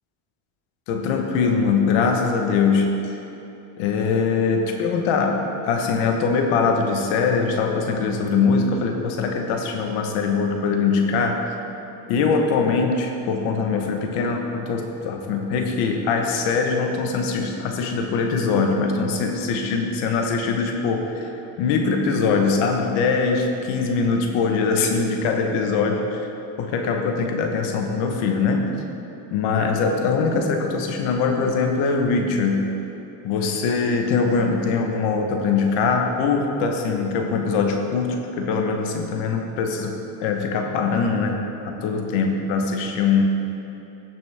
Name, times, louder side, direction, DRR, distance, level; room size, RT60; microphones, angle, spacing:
voice 1, 0.9-2.9 3.8-11.4 12.1-26.2 26.6-28.7 29.3-32.7 33.2-39.9 40.2-43.2, left 4 dB, 85° left, 3 dB, 1.3 m, -22 dB
14.5 x 6.2 x 3.5 m, 3.0 s
cardioid pair, 110°, 47 cm